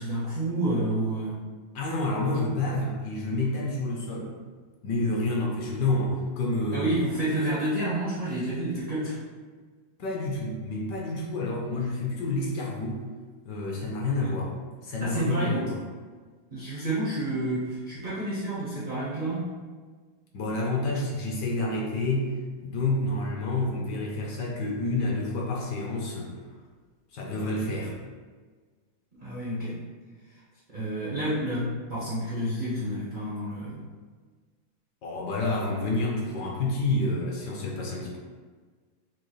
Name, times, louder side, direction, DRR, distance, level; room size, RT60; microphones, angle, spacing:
voice 1, 0.0-1.4 6.7-9.2 15.0-15.7 16.5-19.5 29.2-29.8 30.7-33.9, right 1 dB, 80° right, -8 dB, 0.4 m, -29 dB
voice 2, 1.7-4.3 4.8-6.9 10.0-13.0 13.4-14.5 14.8-15.7 20.3-22.3 22.6-26.4 27.1-28.0 35.0-38.2, left 2 dB, 65° left, -2 dB, 1.2 m, -29 dB
6.2 x 2.3 x 3.1 m, 1.5 s
omnidirectional pair, 2.2 m